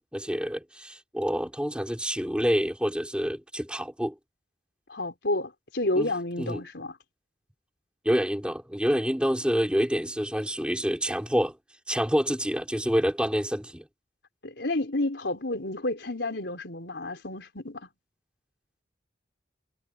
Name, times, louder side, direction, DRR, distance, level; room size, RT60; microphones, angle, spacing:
voice 1, 0.0-4.1 5.9-6.1 6.4-6.6 8.0-11.5 11.9-13.8, equal, 5° right, 4.3 m, -27 dB
voice 2, 4.9-7.0 14.4-17.9, left 2 dB, 70° left, 4.3 m, -30 dB
head